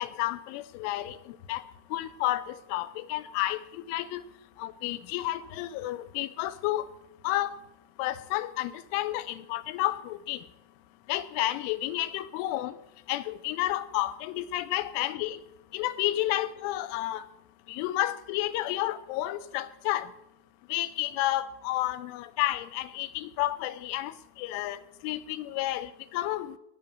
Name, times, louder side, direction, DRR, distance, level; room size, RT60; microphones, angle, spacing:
voice 1, 0.0-4.3 4.6-6.9 7.2-7.6 8.0-10.5 11.1-12.8 13.1-15.4 15.7-17.3 17.7-20.1 20.7-26.6, left 15 dB, 85° left, 14 dB, 3.1 m, -31 dB
17.0 x 5.8 x 8.6 m, 0.86 s
omnidirectional pair, 5.7 m